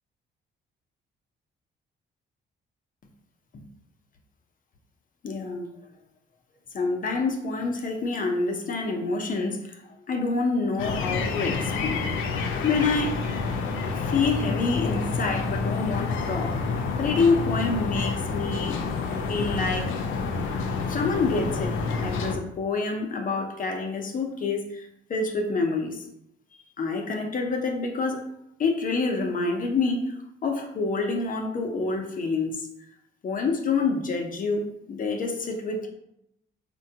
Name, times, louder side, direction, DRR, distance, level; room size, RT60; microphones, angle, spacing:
voice 1, 5.2-5.7 6.7-9.8 10.1-12.0 12.6-13.2 13.9-16.6 17.0-18.8 19.3-19.9 20.9-26.0 26.8-28.2 28.6-30.1 30.4-32.7 33.2-35.9, left 4 dB, 45° left, 2 dB, 0.6 m, -27 dB
sound 1, 10.8-22.3, left 4 dB, 85° left, 0.5 m, -28 dB
4.4 x 2.2 x 2.8 m, 0.79 s
cardioid pair, 90°, 20 cm